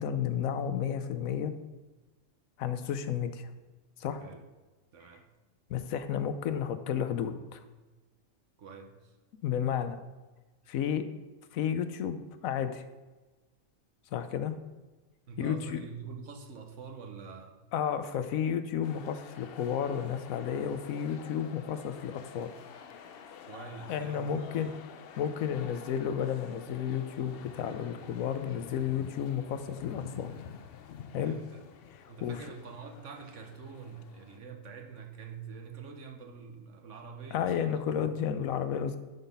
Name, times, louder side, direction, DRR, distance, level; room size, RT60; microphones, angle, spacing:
voice 1, 0.0-1.5 2.6-3.5 4.0-4.2 5.7-7.6 9.4-10.0 10.7-11.1 11.5-12.8 14.1-14.5 15.4-15.8 17.7-22.5 23.9-24.7 25.2-30.3 31.1-31.3 31.9-32.4 37.3-39.0, left 8 dB, 85° left, 10 dB, 1.1 m, -32 dB
voice 2, 4.9-5.3 8.6-9.1 15.3-17.6 23.4-24.3 31.1-31.6 32.1-38.1, right 5 dB, 65° right, 3 dB, 1.2 m, -46 dB
sound 1, 18.8-34.4, left 7 dB, 60° left, 0.7 m, -49 dB
10.5 x 4.0 x 5.3 m, 1.2 s
omnidirectional pair, 1.4 m